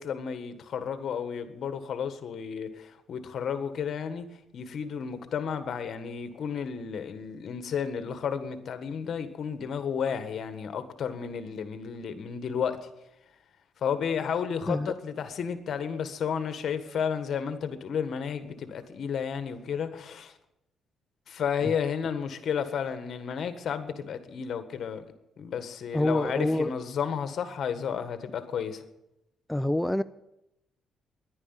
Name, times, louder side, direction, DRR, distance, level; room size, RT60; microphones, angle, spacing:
voice 1, 0.0-4.2 4.5-12.8 13.8-20.3 21.3-25.0 25.4-28.8, left 7 dB, 60° left, 1.5 m, -32 dB
voice 2, 25.9-26.7 29.5-30.0, left 1 dB, 5° left, 0.4 m, -26 dB
10.5 x 9.9 x 9.6 m
cardioid pair, 90°, 0 cm